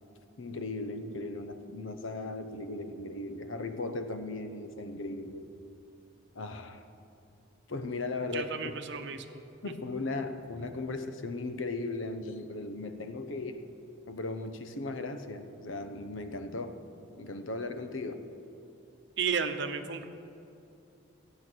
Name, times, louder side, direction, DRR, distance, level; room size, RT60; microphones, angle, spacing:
voice 1, 0.4-5.5 6.3-6.8 7.7-8.5 9.6-13.6 14.1-16.8 17.2-18.3, left 2 dB, 75° left, 8 dB, 0.8 m, -37 dB
voice 2, 8.3-9.4 19.2-20.0, right 6 dB, 60° right, 8 dB, 0.8 m, -33 dB
15.0 x 8.6 x 6.2 m, 2.6 s
head